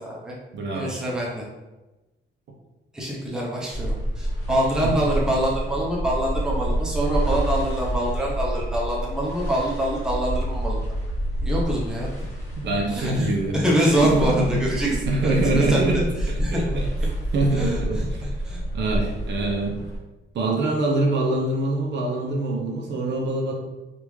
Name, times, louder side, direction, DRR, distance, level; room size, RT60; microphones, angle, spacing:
voice 1, 0.0-0.3 0.7-1.5 2.9-10.8 11.4-12.3 12.9-14.9 15.2-16.9 17.5-18.6, right 1 dB, 5° right, -4 dB, 0.6 m, -25 dB
voice 2, 0.5-1.0 4.8-4.9 12.6-13.6 13.9-16.0 16.3-16.9 17.3-18.2 18.7-19.8 20.3-23.5, right 2 dB, 60° right, -1 dB, 0.7 m, -24 dB
sound 1, 3.7-20.0, right 1 dB, 15° left, 1.3 m, -28 dB
3.4 x 2.5 x 3.1 m, 1.1 s
cardioid pair, 150°, 21 cm